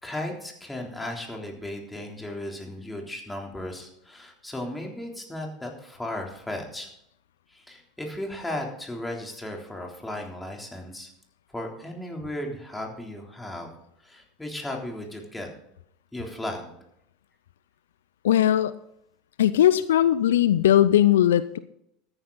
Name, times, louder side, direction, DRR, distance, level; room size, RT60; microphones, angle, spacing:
voice 1, 0.0-6.9 7.5-11.1 11.5-13.7 14.0-15.5 16.1-16.7, left 1 dB, 10° left, 1 dB, 3.4 m, -35 dB
voice 2, 18.2-18.8 19.4-21.6, left 11 dB, 80° left, 15 dB, 0.4 m, -19 dB
13.5 x 9.8 x 4.0 m, 0.75 s
hypercardioid pair, 80°, 0 cm